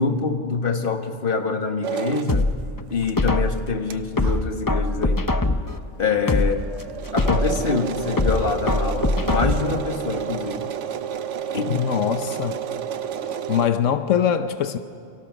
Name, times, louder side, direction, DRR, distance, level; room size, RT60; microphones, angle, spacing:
voice 1, 0.0-2.5 2.9-5.2 6.0-6.6 7.1-10.7 11.5-11.9, left 4 dB, 45° left, 5 dB, 1.7 m, -25 dB
sound 1, 1.8-2.3 3.1-3.2 3.5-3.6 3.9-4.0 4.2-4.3 5.0-5.1 5.3-5.4 5.8-5.9 6.1-13.7, right 8 dB, 75° right, 1.2 m, -30 dB
sound 2, 2.3-3.7 4.2-5.8 6.2-7.7 8.2-9.8 10.2-10.3, left 2 dB, 20° left, 0.7 m, -23 dB
voice 2, 11.7-12.6 13.2-14.8, left 8 dB, 85° left, 10 dB, 1.2 m, -23 dB
28.5 x 24.5 x 6.3 m, 2.5 s
omnidirectional pair, 1.3 m